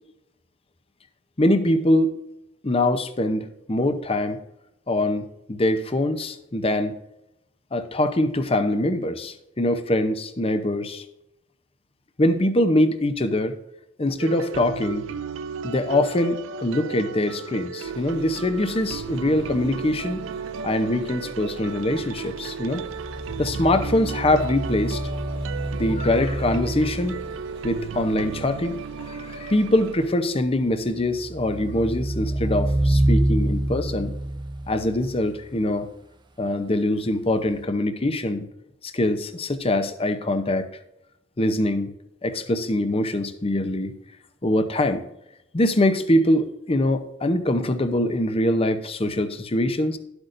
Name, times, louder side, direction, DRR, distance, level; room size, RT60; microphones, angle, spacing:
voice 1, 1.4-2.1 2.6-4.4 4.9-6.9 7.7-11.0 12.2-13.6 14.0-15.0 15.6-20.2 20.6-22.9 23.4-25.0 25.8-27.2 27.6-34.1 34.7-35.9 36.4-38.5 38.8-40.7 41.4-41.9 42.2-43.9 44.4-45.0 45.5-50.0, left 1 dB, 30° left, 9 dB, 0.7 m, -23 dB
sound 1, 14.2-29.9, right 6 dB, 85° right, 0.4 m, -35 dB
sound 2, 17.8-30.1, right 1 dB, 65° right, 1.2 m, -45 dB
sound 3, 22.8-27.5 30.8-35.4 37.5-37.6, right 1 dB, 25° right, 0.6 m, -27 dB
11.5 x 8.0 x 2.6 m, 0.84 s
head